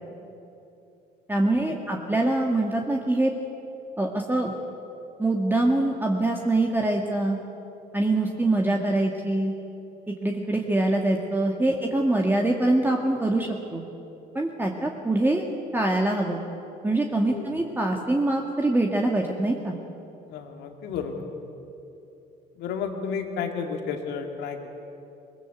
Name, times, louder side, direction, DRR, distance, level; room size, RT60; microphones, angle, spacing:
voice 1, 1.3-3.3 4.0-4.5 5.2-7.4 7.9-9.5 10.2-13.8 14.3-15.5 15.7-16.4 16.8-19.8, right 2 dB, 10° right, 1 dB, 2.0 m, -24 dB
voice 2, 20.3-21.2 22.6-24.7, left 6 dB, 85° left, 4 dB, 2.6 m, -32 dB
22.0 x 21.0 x 8.1 m, 2.8 s
cardioid pair, 110°, 17 cm